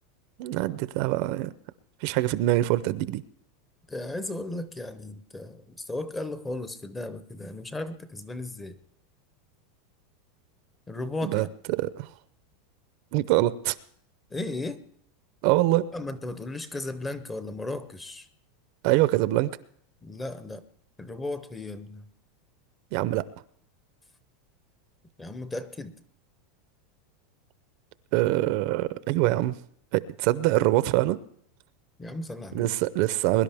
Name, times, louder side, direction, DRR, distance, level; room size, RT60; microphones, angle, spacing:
voice 1, 0.4-1.5 2.0-3.2 11.2-12.1 13.1-13.8 15.4-15.8 18.8-19.5 22.9-23.2 28.1-29.5 29.9-31.2 32.5-33.4, right 16 dB, 45° right, 16 dB, 0.5 m, -24 dB
voice 2, 3.9-8.8 10.9-11.5 14.3-14.8 15.9-18.3 20.0-20.6 21.0-22.1 25.2-25.9 32.0-32.7, left 2 dB, 10° left, 13 dB, 0.6 m, -35 dB
22.0 x 11.0 x 3.5 m, 0.64 s
supercardioid pair, 175°, 0 cm